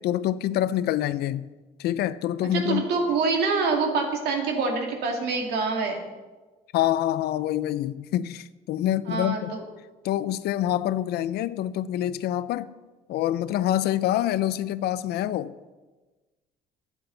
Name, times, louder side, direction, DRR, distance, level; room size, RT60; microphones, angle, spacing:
voice 1, 0.0-1.5 1.8-2.8 6.7-9.5 10.0-12.7 13.1-15.5, left 12 dB, 70° left, 0.5 m, -26 dB
voice 2, 2.5-6.0 9.1-9.6, right 4 dB, 75° right, 2.3 m, -25 dB
12.5 x 8.8 x 3.9 m
cardioid pair, 110°, 17 cm